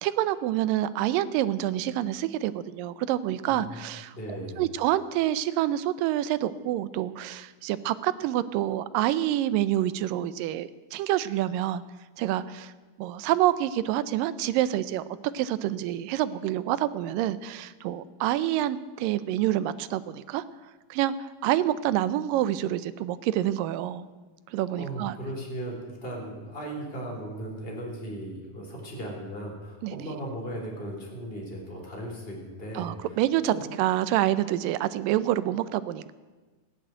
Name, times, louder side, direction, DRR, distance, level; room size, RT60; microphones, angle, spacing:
voice 1, 0.0-11.8 12.2-12.7 13.0-15.0 15.3-20.4 20.9-24.1 24.5-25.2 29.8-30.0 32.7-36.1, right 13 dB, 90° right, 15 dB, 2.4 m, -27 dB
voice 2, 3.5-3.8 4.1-4.6 24.7-33.2 33.4-33.6, right 1 dB, 15° left, -2 dB, 3.9 m, -37 dB
15.5 x 10.0 x 8.9 m, 1.3 s
omnidirectional pair, 3.8 m